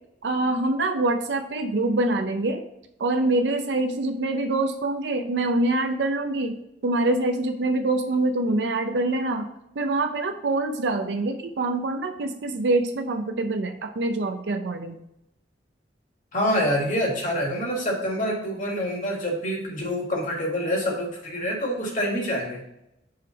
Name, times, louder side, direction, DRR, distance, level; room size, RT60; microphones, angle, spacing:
voice 1, 0.2-2.6 3.0-6.6 6.8-9.5 9.8-15.0, right 2 dB, 70° right, 6 dB, 0.5 m, -25 dB
voice 2, 16.3-22.6, equal, 45° left, -1 dB, 1.8 m, -26 dB
5.5 x 3.4 x 5.6 m, 0.82 s
head